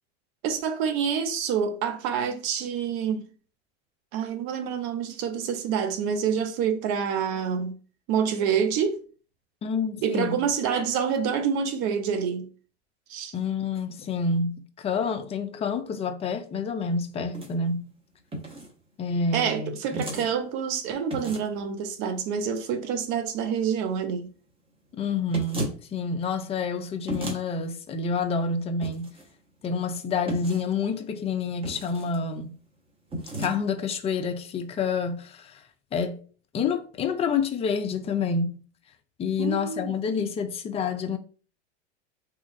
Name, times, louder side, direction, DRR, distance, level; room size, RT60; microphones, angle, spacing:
voice 1, 0.4-3.3 4.1-7.8 8.1-9.0 10.0-12.5 13.1-13.3 19.3-24.3 39.4-39.9, right 7 dB, 50° right, 0.8 m, -27 dB
voice 2, 9.6-10.4 13.3-17.9 19.0-20.1 25.0-29.2 29.6-32.6 33.3-35.6 35.9-36.2 36.5-38.6 39.2-41.2, left 5 dB, 20° left, 0.4 m, -28 dB
sound 1, 17.2-17.5 18.3-18.7 19.9-20.3 21.1-21.6 25.3-25.8 27.1-27.4 28.8-29.3 30.3-30.7 31.6-32.2 33.1-33.6, right 1 dB, 15° right, 0.9 m, -34 dB
3.1 x 2.5 x 3.5 m
hypercardioid pair, 100°, 36 cm